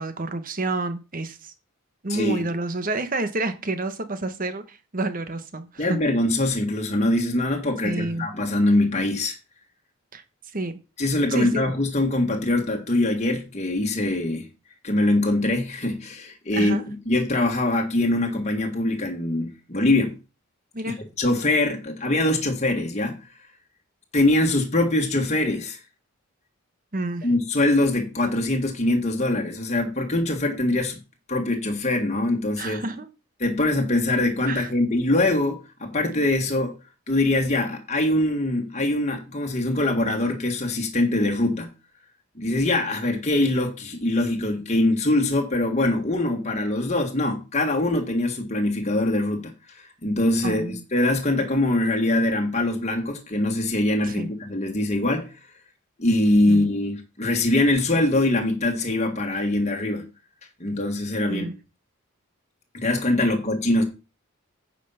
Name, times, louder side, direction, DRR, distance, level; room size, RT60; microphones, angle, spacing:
voice 1, 0.0-1.5 2.0-6.0 7.8-8.3 10.1-10.2 10.5-10.7 11.3-11.7 16.5-16.8 20.7-21.0 26.9-27.3 32.6-33.1 34.5-34.7 50.4-50.8 54.1-54.3 56.5-56.7 61.2-61.6 63.2-63.3, right 2 dB, 40° right, 1.1 m, -29 dB
voice 2, 2.1-2.5 5.8-9.4 11.0-14.5 14.8-20.2 20.9-23.2 24.1-25.8 27.2-31.0 31.3-32.8 33.4-36.7 37.1-41.7 42.3-55.3 56.0-60.0 60.6-61.5 62.7-63.8, left 1 dB, 30° left, 1.6 m, -23 dB
9.3 x 5.5 x 5.7 m
head